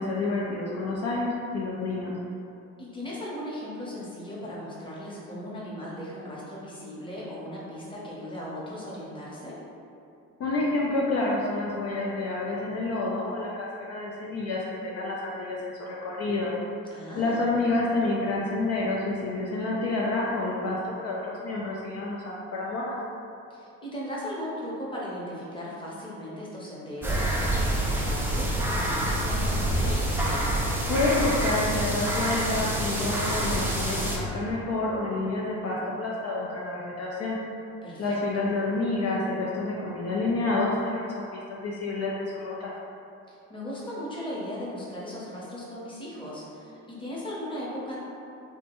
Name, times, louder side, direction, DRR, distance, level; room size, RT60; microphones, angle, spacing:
voice 1, 0.0-2.2 10.4-16.5 17.2-23.0 30.9-37.4 38.0-42.7, left 2 dB, 55° left, -4 dB, 0.4 m, -29 dB
voice 2, 2.8-9.6 16.9-17.5 23.5-30.1 37.8-38.2 43.3-48.0, equal, 15° left, -6 dB, 0.8 m, -37 dB
sound 1, 27.0-34.2, right 1 dB, 5° right, 0.4 m, -27 dB
3.3 x 2.1 x 2.9 m, 2.7 s
cardioid pair, 90°, 30 cm